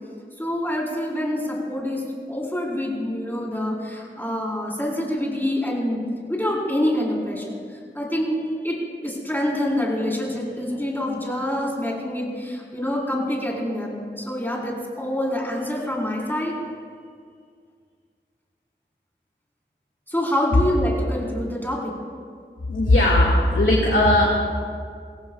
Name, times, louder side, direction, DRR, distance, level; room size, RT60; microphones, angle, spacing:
voice 1, 0.4-2.0 2.3-6.0 6.3-8.4 8.6-8.8 9.0-16.5 20.1-21.9, left 1 dB, 10° left, -4 dB, 4.6 m, -26 dB
voice 2, 22.7-24.3, left 1 dB, 80° left, -5 dB, 2.1 m, -17 dB
24.0 x 17.0 x 2.5 m, 2.1 s
wide cardioid pair, 45°, 20 cm